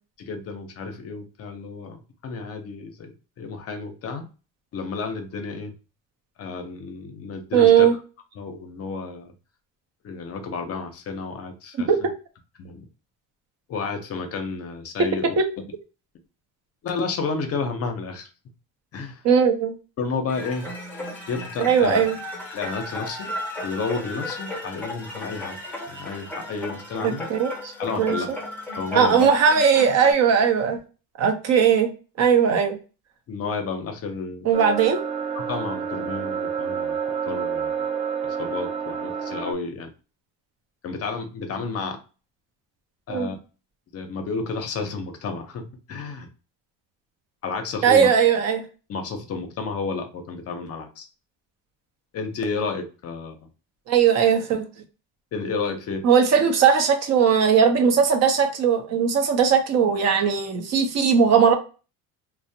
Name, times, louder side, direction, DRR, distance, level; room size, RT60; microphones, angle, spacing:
voice 1, 0.2-4.3 4.7-5.7 6.4-7.9 8.4-9.3 10.0-11.9 12.6-12.9 13.7-15.4 16.8-18.3 18.9-19.2 20.0-20.7 21.3-22.0 22.5-23.3 23.6-25.6 25.9-27.3 27.8-28.3 28.7-29.3 33.3-34.5 35.3-37.0 37.2-37.9 38.2-39.9 40.8-42.0 43.1-43.4 43.9-46.3 47.4-48.1 48.9-51.1 52.1-53.4 55.3-56.1, left 4 dB, 45° left, 6 dB, 0.6 m, -31 dB
voice 2, 7.5-7.9 11.9-12.0 15.4-15.5 19.2-19.7 21.6-22.2 27.0-27.7 28.0-28.2 28.9-30.8 31.2-31.9 32.2-32.8 34.4-35.0 43.1-43.3 47.8-48.6 53.9-54.6 56.0-61.6, right 7 dB, 50° right, 5 dB, 0.7 m, -18 dB
sound 1, 20.3-30.1, left 1 dB, 5° left, 0.7 m, -35 dB
sound 2, 34.5-39.5, right 7 dB, 20° right, 0.4 m, -29 dB
2.4 x 2.0 x 2.6 m, 0.34 s
cardioid pair, 125°, 34 cm